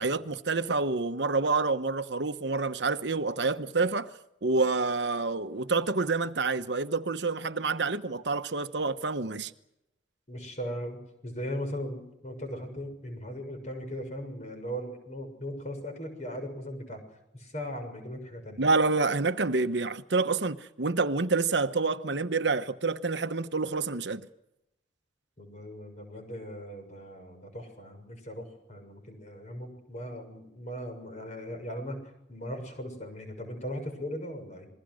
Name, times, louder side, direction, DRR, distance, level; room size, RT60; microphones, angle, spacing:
voice 1, 0.0-4.1 4.4-9.5 18.6-24.3, right 3 dB, 65° right, 1.0 m, -28 dB
voice 2, 10.3-17.0 17.3-18.6 25.4-32.0 32.3-34.7, equal, 40° left, 6.8 m, -38 dB
28.0 x 21.5 x 6.4 m
head